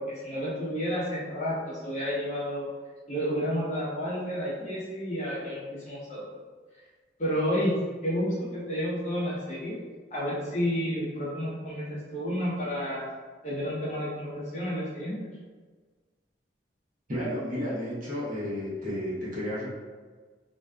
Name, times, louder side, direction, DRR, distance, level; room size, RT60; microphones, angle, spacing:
voice 1, 0.0-2.7 3.1-6.2 7.2-7.7 8.0-9.8 10.1-13.0 13.4-15.2, equal, 40° left, -7 dB, 0.8 m, -30 dB
voice 2, 17.1-19.7, left 1 dB, 45° right, -8 dB, 0.8 m, -32 dB
2.5 x 2.3 x 2.2 m, 1.4 s
head